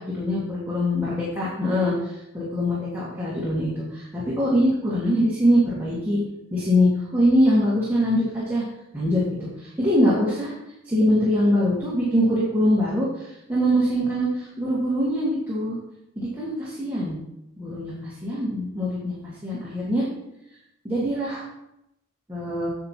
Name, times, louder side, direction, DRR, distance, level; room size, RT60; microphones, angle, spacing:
voice 1, 0.0-6.2 6.5-8.6 8.9-10.5 10.8-15.8 16.2-17.2 17.6-20.0 20.8-21.4 22.3-22.7, equal, 10° right, -8 dB, 1.8 m, -23 dB
9.0 x 7.5 x 2.9 m, 0.84 s
head